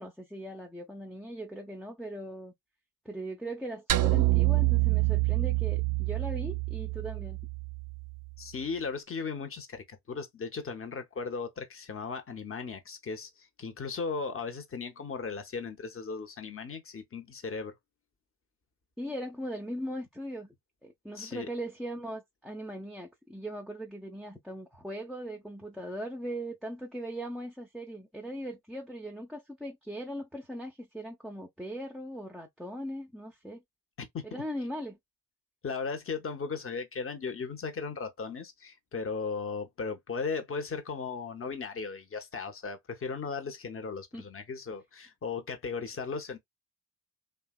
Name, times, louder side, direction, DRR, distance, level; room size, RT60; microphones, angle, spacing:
voice 1, 0.0-2.5 3.0-7.4 19.0-20.5 20.8-33.6 34.2-35.0 44.1-44.2, right 1 dB, ahead, 0.7 m, -39 dB
sound 1, 3.9-8.3, right 20 dB, 50° right, 0.5 m, -27 dB
voice 2, 8.4-17.7 21.2-21.5 34.0-34.3 35.6-46.4, left 5 dB, 30° left, 1.0 m, -37 dB
2.8 x 2.3 x 2.3 m
hypercardioid pair, 50°, 42 cm